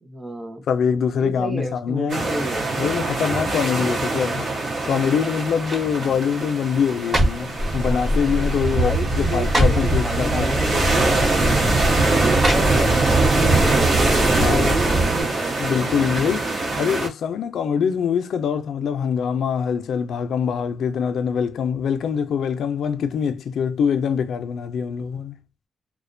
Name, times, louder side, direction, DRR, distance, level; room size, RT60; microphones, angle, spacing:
voice 1, 0.0-0.6 1.2-2.6 8.7-11.3 12.0-15.8, right 2 dB, 20° right, 0.6 m, -30 dB
voice 2, 0.7-2.4 2.8-10.6 14.3-14.8 15.6-25.4, left 7 dB, 80° left, 0.3 m, -24 dB
sound 1, 2.1-17.1, right 2 dB, 85° right, 0.9 m, -23 dB
sound 2, 5.6-6.0 6.7-7.6 8.4-8.6 8.9-9.0 9.4-9.9 10.9-11.0 12.4-13.1 13.5-13.6, right 1 dB, 35° right, 1.1 m, -24 dB
sound 3, 7.6-15.2, right 1 dB, 65° right, 1.0 m, -24 dB
2.4 x 2.1 x 2.5 m
wide cardioid pair, 135°, 0 cm